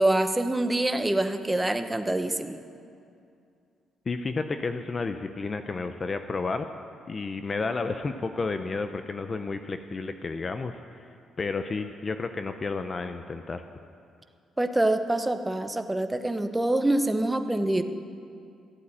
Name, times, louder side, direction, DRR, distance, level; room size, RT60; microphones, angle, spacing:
voice 1, 0.0-2.6 14.6-17.8, right 1 dB, 10° right, 8 dB, 0.8 m, -25 dB
voice 2, 4.1-6.7 7.1-10.7 11.4-13.6, left 4 dB, 35° left, 8 dB, 0.6 m, -31 dB
14.0 x 8.3 x 8.7 m, 2.4 s
cardioid pair, 90°, 0 cm